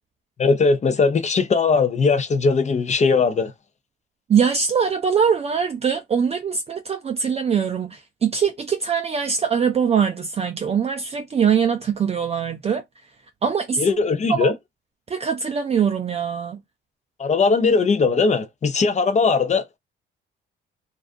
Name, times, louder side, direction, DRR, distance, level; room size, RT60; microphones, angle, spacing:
voice 1, 0.4-3.5 13.8-14.5 17.2-19.8, left 4 dB, 35° left, 0.6 m, -19 dB
voice 2, 4.3-12.8 13.4-14.0 14.3-14.5 15.1-16.6, right 7 dB, 30° right, 0.4 m, -22 dB
2.4 x 2.4 x 2.4 m
cardioid pair, 90°, 20 cm